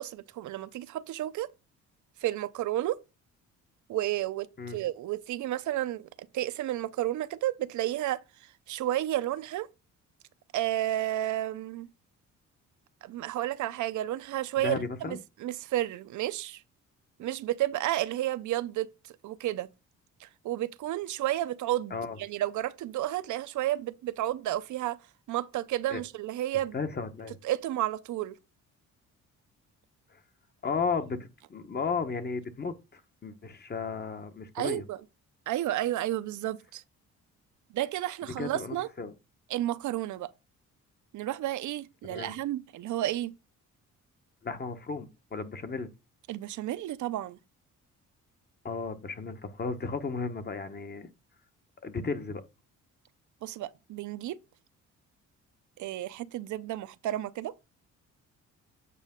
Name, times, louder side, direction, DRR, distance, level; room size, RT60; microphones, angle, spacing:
voice 1, 0.0-1.5 2.2-3.0 3.9-6.1 6.3-8.2 8.7-9.7 10.5-11.9 13.0-14.8 15.0-16.6 17.2-19.7 20.2-25.0 25.3-26.8 27.4-28.3 34.5-35.0 35.5-36.8 37.7-38.9 39.5-40.3 41.1-43.3 46.3-47.4 53.4-54.4 55.8-57.5, right 14 dB, 75° right, 0.6 m, -31 dB
voice 2, 14.6-15.2 21.9-22.2 25.9-26.0 26.7-27.4 30.1-30.2 30.6-31.2 31.5-34.8 38.4-39.1 42.1-42.4 44.4-45.9 48.6-51.1 51.8-52.4, left 4 dB, 35° left, 1.2 m, -34 dB
8.3 x 5.2 x 3.7 m
cardioid pair, 90°, 30 cm